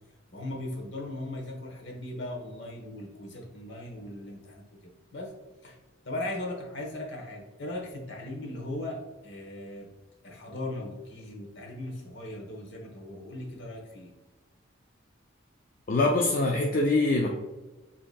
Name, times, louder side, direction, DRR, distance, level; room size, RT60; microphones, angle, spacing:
voice 1, 0.3-5.3 5.6-5.8 6.0-9.9 10.2-14.1, left 1 dB, 60° left, 0 dB, 1.0 m, -38 dB
voice 2, 15.9-17.3, left 2 dB, 45° left, 0 dB, 0.4 m, -24 dB
7.6 x 2.8 x 2.2 m, 1.2 s
head